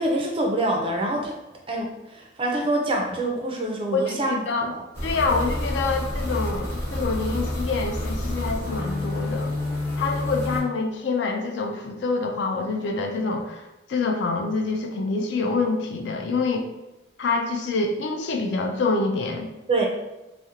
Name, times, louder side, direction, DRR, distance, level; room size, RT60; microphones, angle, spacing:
voice 1, 0.0-1.3 1.7-1.9 2.4-4.3 19.7-19.9, right 2 dB, 25° right, 0 dB, 0.3 m, -25 dB
voice 2, 3.9-4.7 5.0-9.5 10.0-16.7 17.2-19.5, left 3 dB, 65° left, 3 dB, 0.3 m, -26 dB
sound 1, 4.9-10.6, left 1 dB, 10° left, 0.7 m, -28 dB
2.4 x 2.0 x 2.8 m, 1.0 s
head